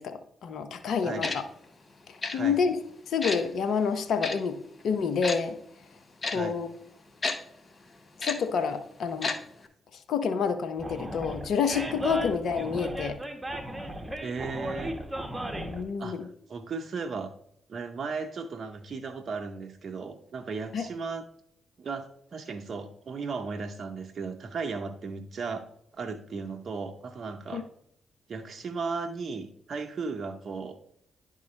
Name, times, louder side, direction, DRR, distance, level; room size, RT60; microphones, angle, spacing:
voice 1, 0.0-1.3 2.3-2.8 3.1-5.6 6.3-6.7 8.2-9.3 10.1-13.2 15.6-16.3 20.7-20.8 27.5-27.6, left 6 dB, 70° left, 9 dB, 0.6 m, -28 dB
Tick-tock, 1.2-1.4 2.2-2.4 3.2-3.4 4.2-4.3 5.2-5.4 6.2-6.4 7.2-7.4 8.2-8.4 9.2-9.4 9.6-9.7, left 3 dB, 40° left, 0.9 m, -30 dB
Animal, 10.8-15.8, equal, 15° right, 1.4 m, -35 dB
voice 2, 14.2-14.9 16.0-16.2 16.5-17.3 17.7-21.3 21.8-25.7 25.9-27.6 28.3-30.8, right 4 dB, 55° right, 5 dB, 0.6 m, -36 dB
10.5 x 3.7 x 3.1 m, 0.70 s
hypercardioid pair, 45°, 0 cm